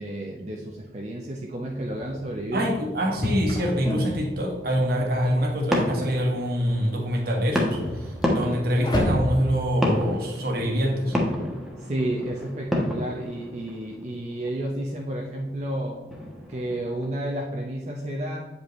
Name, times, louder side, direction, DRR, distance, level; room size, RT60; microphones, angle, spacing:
voice 1, 0.0-2.7 11.8-16.0 16.5-18.5, right 1 dB, 40° right, -1 dB, 0.6 m, -31 dB
sound 1, 1.6-11.3, equal, 25° left, 1.1 m, -33 dB
voice 2, 2.5-11.2, equal, 55° right, 0 dB, 1.5 m, -25 dB
sound 2, 4.9-17.1, left 1 dB, ahead, 1.1 m, -31 dB
8.3 x 5.3 x 3.1 m, 1.2 s
head